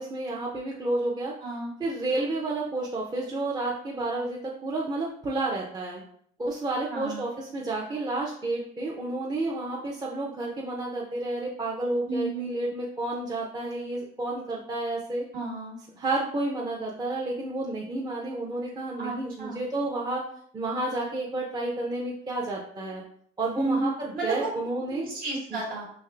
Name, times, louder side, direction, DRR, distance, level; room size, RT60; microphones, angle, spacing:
voice 1, 0.0-1.3 1.8-6.0 6.4-15.2 16.0-20.2 20.5-23.0 23.4-25.1 25.5-25.6, right 2 dB, 25° right, -3 dB, 0.6 m, -30 dB
voice 2, 1.4-1.7 6.9-7.3 12.1-12.5 15.3-15.8 19.0-19.6 23.5-23.9 24.1-24.5 25.0-25.8, right 2 dB, 60° right, -3 dB, 1.4 m, -31 dB
3.5 x 3.2 x 3.3 m, 0.63 s
cardioid pair, 110°, 17 cm